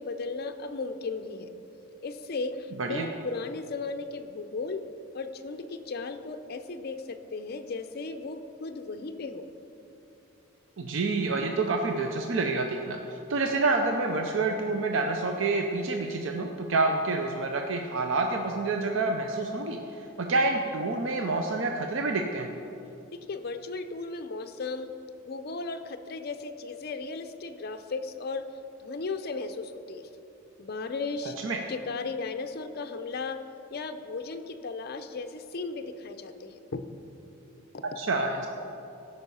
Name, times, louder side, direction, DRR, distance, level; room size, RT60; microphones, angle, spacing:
voice 1, 0.0-1.5 2.0-4.8 5.1-9.5 23.1-24.9 25.3-28.5 28.8-30.1 30.6-31.4 31.7-33.4 33.7-36.9 37.7-37.8, left 3 dB, 50° left, 8 dB, 0.5 m, -36 dB
voice 2, 10.8-22.5 31.4-31.6 38.0-38.5, right 3 dB, 65° right, 3 dB, 0.6 m, -28 dB
13.0 x 5.4 x 5.5 m, 2.9 s
head